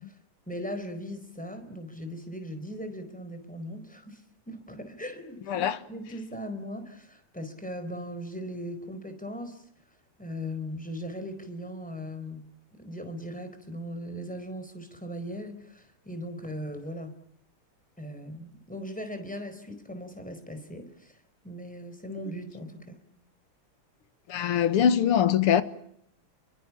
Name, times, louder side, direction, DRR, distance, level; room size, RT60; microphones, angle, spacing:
voice 1, 0.5-9.6 10.2-12.5 12.8-17.2 18.0-21.2 21.4-23.0, equal, 5° left, 4.4 m, -39 dB
voice 2, 5.5-5.8 24.3-25.6, left 9 dB, 90° left, 2.2 m, -22 dB
28.5 x 24.0 x 7.3 m
omnidirectional pair, 2.4 m